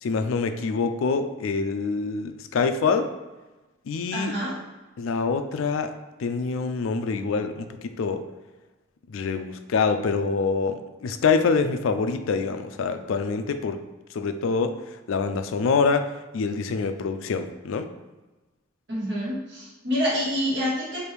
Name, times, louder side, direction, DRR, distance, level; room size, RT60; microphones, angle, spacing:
voice 1, 0.0-3.1 3.9-4.3 5.0-5.9 6.2-8.2 9.1-13.8 14.1-17.9, left 4 dB, 70° left, 9 dB, 0.4 m, -25 dB
voice 2, 4.1-4.6 18.9-21.0, equal, 55° right, -7 dB, 1.2 m, -27 dB
4.7 x 2.5 x 3.3 m, 1.2 s
head